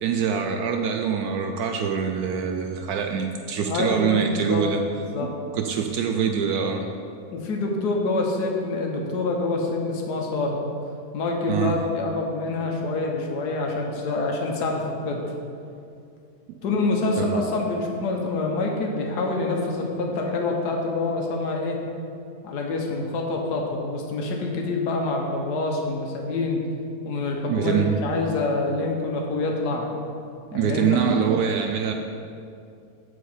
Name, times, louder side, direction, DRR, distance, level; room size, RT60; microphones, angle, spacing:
voice 1, 0.0-4.8 5.5-6.9 11.5-11.8 16.5-16.6 17.2-17.3 27.4-28.0 30.5-31.9, right 7 dB, 75° right, 4 dB, 1.1 m, -24 dB
voice 2, 3.7-4.6 5.1-5.3 7.3-10.6 11.1-15.2 16.6-21.8 22.4-26.6 27.0-29.9 30.5-31.0, left 3 dB, 85° left, 0 dB, 1.6 m, -26 dB
7.9 x 5.0 x 7.1 m, 2.5 s
omnidirectional pair, 1.7 m